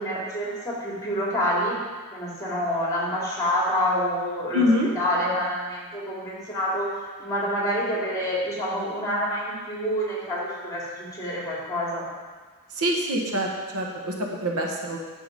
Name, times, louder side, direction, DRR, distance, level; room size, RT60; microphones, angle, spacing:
voice 1, 0.0-1.7 2.1-4.7 4.9-12.0, equal, 15° left, -5 dB, 2.9 m, -27 dB
voice 2, 4.5-4.9 12.7-15.0, left 1 dB, 75° right, 0 dB, 1.3 m, -25 dB
10.5 x 6.1 x 5.3 m, 1.4 s
head